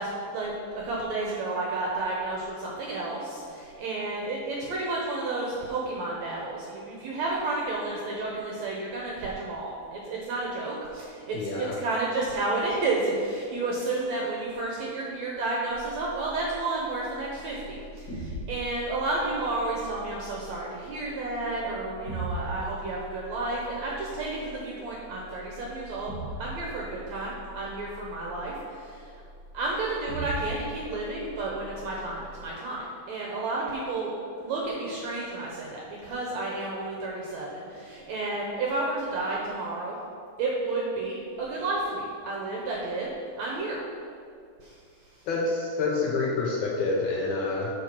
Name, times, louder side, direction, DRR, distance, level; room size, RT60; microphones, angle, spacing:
voice 1, 0.0-26.1 26.4-29.1 29.5-40.0 40.4-43.1 43.4-43.8 44.6-44.8, right 2 dB, 70° right, -3 dB, 1.7 m, -31 dB
voice 2, 11.3-11.7 45.3-47.7, left 3 dB, 75° left, -2 dB, 1.9 m, -27 dB
sound 1, 15.7-32.5, right 1 dB, 35° left, 1.4 m, -41 dB
7.2 x 5.9 x 5.9 m, 2.3 s
omnidirectional pair, 4.2 m